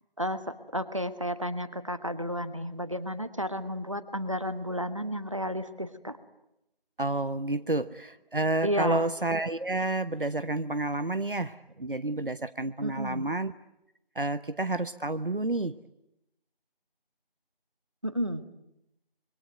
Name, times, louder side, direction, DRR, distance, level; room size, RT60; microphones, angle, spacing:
voice 1, 0.2-6.2 8.6-9.1 12.8-13.2 18.0-18.5, equal, 35° right, 12 dB, 1.3 m, -32 dB
voice 2, 7.0-13.5 14.1-15.8, right 2 dB, 65° right, 13 dB, 1.0 m, -30 dB
26.5 x 24.0 x 9.1 m, 0.85 s
figure-of-eight pair, 175°, 29 cm